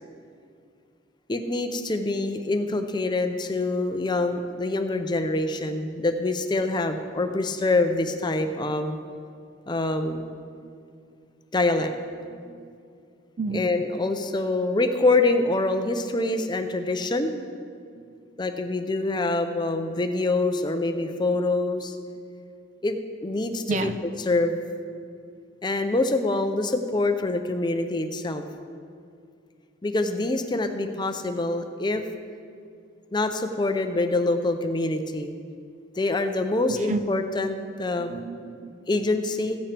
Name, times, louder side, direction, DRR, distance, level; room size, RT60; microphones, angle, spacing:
voice 1, 1.3-9.0 9.7-10.4 11.5-11.9 13.5-17.3 18.4-22.0 22.8-23.9 24.2-24.6 25.6-28.5 29.8-32.0 33.1-35.3 36.0-38.1 38.9-39.6, left 2 dB, 25° left, 7 dB, 0.5 m, -25 dB
voice 2, 12.3-12.8 13.4-13.6 17.1-17.2 17.9-18.1 23.7-23.9 36.7-37.0 38.0-38.7, right 3 dB, 40° right, 10 dB, 0.4 m, -31 dB
15.5 x 8.7 x 3.4 m, 2.3 s
head